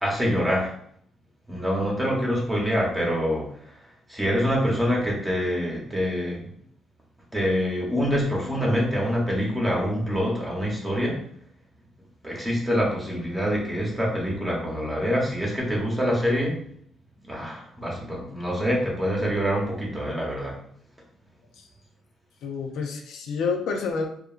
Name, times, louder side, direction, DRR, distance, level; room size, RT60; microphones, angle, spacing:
voice 1, 0.0-0.7 1.5-3.5 4.1-6.4 7.3-11.2 12.2-16.6 17.3-20.6, equal, 10° right, -3 dB, 0.8 m, -25 dB
voice 2, 22.4-24.1, left 5 dB, 85° left, 3 dB, 0.4 m, -28 dB
2.8 x 2.4 x 2.4 m, 0.65 s
cardioid pair, 130°, 0 cm